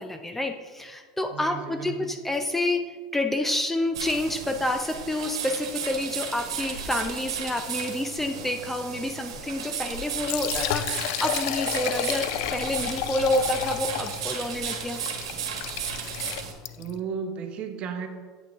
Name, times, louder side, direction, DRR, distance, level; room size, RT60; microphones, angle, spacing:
voice 1, 0.0-2.8 3.1-12.3 12.5-15.0, left 1 dB, 10° left, 5 dB, 0.5 m, -28 dB
voice 2, 1.3-2.1 16.8-18.1, right 6 dB, 45° right, 6 dB, 1.0 m, -34 dB
sound 1, 3.9-16.5, right 7 dB, 85° right, 1.3 m, -34 dB
Liquid, 10.1-17.0, left 12 dB, 65° left, 0.4 m, -32 dB
8.2 x 5.9 x 3.5 m, 1.5 s
hypercardioid pair, 100°, 3 cm